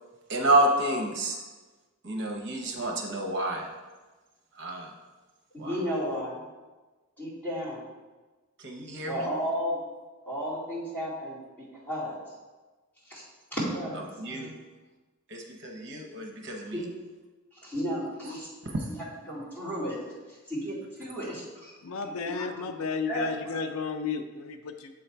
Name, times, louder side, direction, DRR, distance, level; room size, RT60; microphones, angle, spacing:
voice 1, 0.3-1.4 2.0-3.7 4.6-4.9 5.6-5.8 8.6-9.3 14.2-14.5 15.3-16.8 18.2-18.3, right 1 dB, 55° right, 1 dB, 0.8 m, -29 dB
voice 2, 5.5-6.4 7.2-7.8 9.1-9.9 10.3-12.2 13.1-13.2 13.5-14.5 16.7-16.9 17.6-20.0 20.3-21.7 22.0-22.6 23.1-23.6, equal, 10° left, -9 dB, 2.2 m, -34 dB
voice 3, 21.8-24.9, left 5 dB, 80° left, 7 dB, 0.5 m, -33 dB
7.4 x 3.9 x 4.4 m, 1.3 s
head